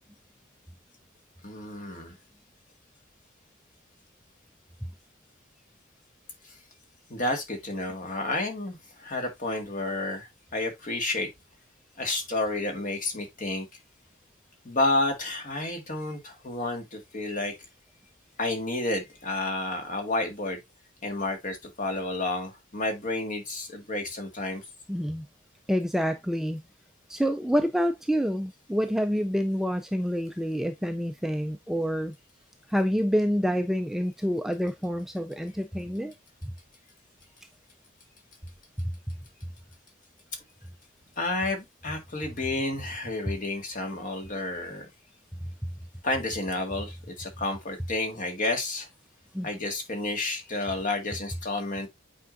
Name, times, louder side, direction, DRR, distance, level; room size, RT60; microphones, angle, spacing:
voice 1, 1.4-2.2 7.1-11.3 12.0-13.7 14.7-17.5 18.4-20.6 21.0-24.6 41.2-44.9 46.0-48.9 49.4-51.9, left 2 dB, 40° left, 1.8 m, -30 dB
voice 2, 24.9-25.3 25.7-26.6 27.1-32.1 32.7-36.1 38.8-38.9 49.3-49.5, equal, ahead, 0.3 m, -27 dB
8.3 x 4.6 x 2.5 m
head